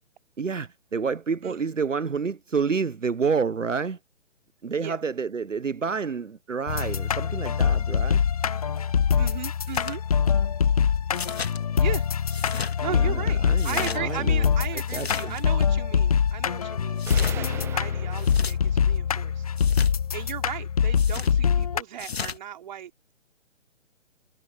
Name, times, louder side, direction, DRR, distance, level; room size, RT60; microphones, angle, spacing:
voice 1, 0.4-4.0 4.6-8.2 12.9-15.4, right 5 dB, 85° right, 0.8 m, -29 dB
sound 1, 6.7-21.8, left 7 dB, 30° left, 0.6 m, -24 dB
voice 2, 9.2-10.0 11.8-12.1 12.8-19.4 20.1-23.1, right 10 dB, 35° right, 3.4 m, -36 dB
sound 2, 9.7-10.0 11.1-11.6 12.3-12.7 13.5-14.0 14.9-15.4 17.0-17.4 18.2-18.5 19.6-19.9 21.0-21.3 22.0-22.4, left 6 dB, 55° left, 2.6 m, -34 dB
sound 3, 17.1-19.0, right 10 dB, 5° right, 1.0 m, -40 dB
figure-of-eight pair, 135°, 37 cm